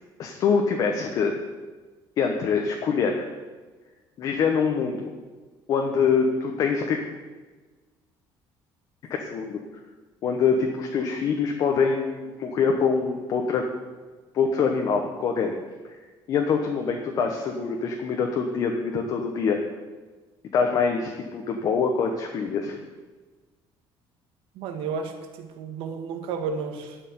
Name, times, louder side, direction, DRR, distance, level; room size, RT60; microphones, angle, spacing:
voice 1, 0.2-1.3 2.2-3.3 4.2-5.1 5.7-7.0 9.2-9.6 10.2-13.6 14.3-15.6 16.3-19.6 20.5-22.8, left 5 dB, 40° left, 3 dB, 1.1 m, -24 dB
voice 2, 24.5-27.0, right 5 dB, 70° right, 5 dB, 1.8 m, -32 dB
11.5 x 6.6 x 9.5 m, 1.3 s
cardioid pair, 180°, 9 cm